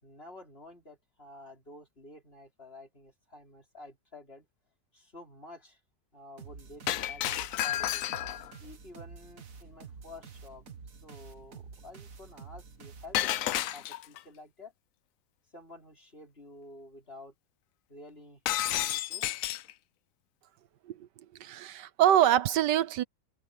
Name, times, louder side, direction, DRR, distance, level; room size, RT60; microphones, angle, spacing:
voice 1, 0.0-4.5 4.9-5.8 6.1-8.1 8.6-10.6 11.0-14.7 15.5-17.3 17.9-18.4 18.7-19.3, left 2 dB, 30° left, 4.9 m, -50 dB
sound 1, 6.4-13.5, right 5 dB, 50° right, 1.8 m, -49 dB
Shatter, 6.9-8.5 13.1-14.2 18.5-19.7, left 13 dB, 75° left, 0.7 m, -31 dB
voice 2, 21.4-23.0, right 11 dB, 70° right, 1.4 m, -25 dB
omnidirectional pair, 2.0 m